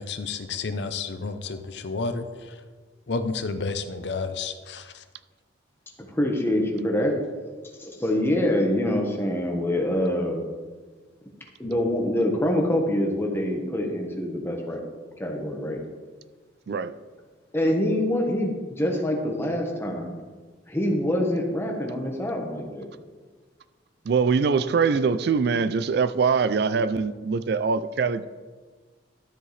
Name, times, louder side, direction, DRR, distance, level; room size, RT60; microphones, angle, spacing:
voice 1, 0.0-2.6 3.1-5.0, left 4 dB, 65° left, 0.6 m, -31 dB
voice 2, 6.1-7.2 7.8-10.4 11.6-14.8 15.2-15.8 17.5-20.1 20.7-22.9, left 1 dB, 15° left, 1.3 m, -25 dB
voice 3, 24.1-28.3, right 5 dB, 60° right, 0.4 m, -23 dB
12.0 x 7.5 x 3.3 m
head